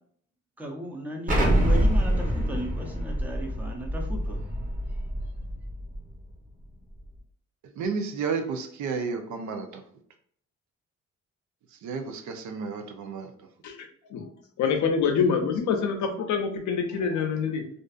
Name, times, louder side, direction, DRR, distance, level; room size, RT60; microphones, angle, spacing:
voice 1, 0.6-4.4, equal, 5° right, 1 dB, 0.5 m, -36 dB
Explosion, 1.3-6.0, equal, 25° right, 0.9 m, -25 dB
voice 2, 7.8-9.8 11.8-13.3, right 5 dB, 70° right, 5 dB, 0.5 m, -32 dB
voice 3, 13.6-14.2 14.6-17.6, left 6 dB, 70° left, 4 dB, 0.6 m, -26 dB
2.5 x 2.4 x 2.3 m, 0.62 s
cardioid pair, 90°, 30 cm